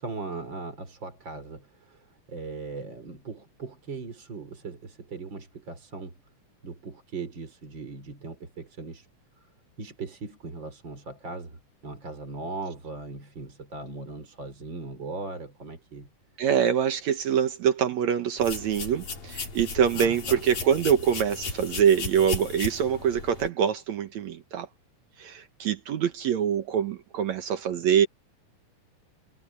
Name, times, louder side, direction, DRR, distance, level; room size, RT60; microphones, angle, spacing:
voice 1, 0.0-6.2 6.6-9.1 9.8-16.1 19.9-20.4, right 3 dB, 35° right, 4.2 m, -39 dB
voice 2, 16.4-24.7 25.2-28.1, right 8 dB, 65° right, 2.3 m, -24 dB
sound 1, 18.4-23.5, left 4 dB, 65° left, 6.1 m, -36 dB
omnidirectional pair, 3.7 m